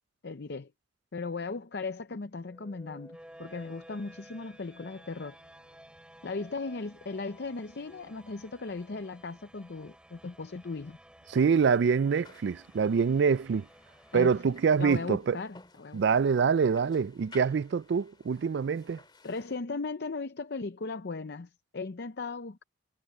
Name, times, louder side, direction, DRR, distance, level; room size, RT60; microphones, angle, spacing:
voice 1, 0.2-0.7 1.1-5.4 6.2-11.0 14.1-16.0 19.2-22.6, left 3 dB, 55° left, 0.6 m, -37 dB
Bowed string instrument, 2.3-7.5, left 2 dB, 90° left, 6.9 m, -68 dB
sound 1, 2.4-15.4, equal, 5° right, 3.9 m, -55 dB
voice 2, 11.3-13.7 14.1-15.4 15.9-19.0, right 6 dB, 60° right, 0.3 m, -25 dB
sound 2, 12.2-19.6, left 3 dB, 25° left, 2.6 m, -57 dB
head